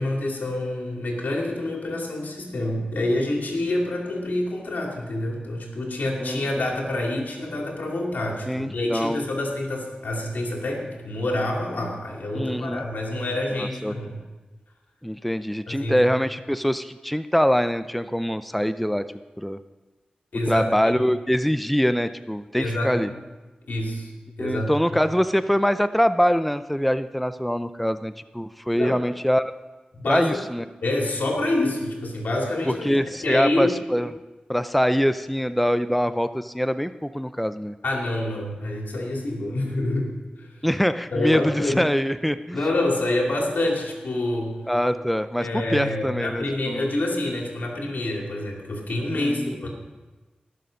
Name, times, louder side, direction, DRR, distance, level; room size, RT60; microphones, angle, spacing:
voice 1, 0.0-14.2 15.7-16.0 20.3-21.0 22.6-23.1 23.7-24.1 24.4-25.0 28.7-29.0 29.9-30.4 30.8-33.8 37.8-40.1 40.4-40.5 41.1-41.8 42.5-44.6 45.4-49.7, left 1 dB, 85° left, -1 dB, 2.7 m, -27 dB
voice 2, 6.2-6.6 8.5-9.2 12.3-12.9 13.6-13.9 15.0-19.6 20.5-23.1 24.4-29.5 30.1-30.6 32.7-34.1 34.5-37.7 40.6-42.6 44.7-46.9 49.2-49.5, equal, ahead, 12 dB, 0.5 m, -24 dB
19.0 x 6.8 x 5.2 m, 1.2 s
cardioid pair, 45°, 3 cm